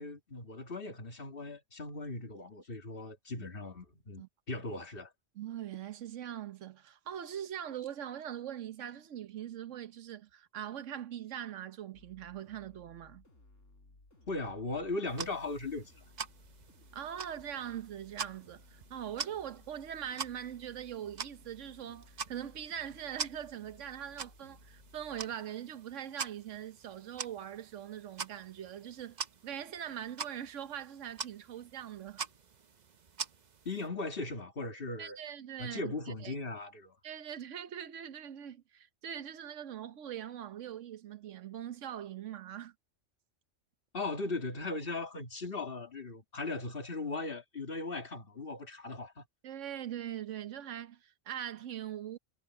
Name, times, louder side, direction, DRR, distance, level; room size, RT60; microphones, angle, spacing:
voice 1, 0.0-5.1 14.3-16.0 33.7-35.2 35.6-37.0 43.9-49.3, left 3 dB, 45° left, 2.2 m, -38 dB
voice 2, 5.3-13.2 16.9-32.2 35.0-36.3 37.0-42.7 49.4-52.2, right 10 dB, 75° right, 1.2 m, -42 dB
sound 1, 11.9-25.4, left 2 dB, 80° left, 4.7 m, -60 dB
sound 2, 15.1-33.9, right 5 dB, 40° right, 0.8 m, -45 dB
omnidirectional pair, 1.3 m